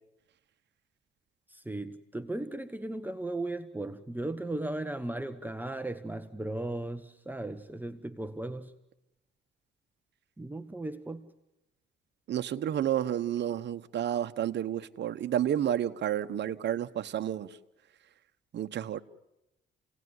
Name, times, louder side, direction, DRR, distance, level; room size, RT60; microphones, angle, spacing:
voice 1, 1.5-8.7 10.4-11.3, right 2 dB, 10° right, 1.1 m, -36 dB
voice 2, 12.3-17.5 18.5-19.0, right 10 dB, 60° right, 1.1 m, -30 dB
29.5 x 18.0 x 9.5 m
cardioid pair, 90°, 20 cm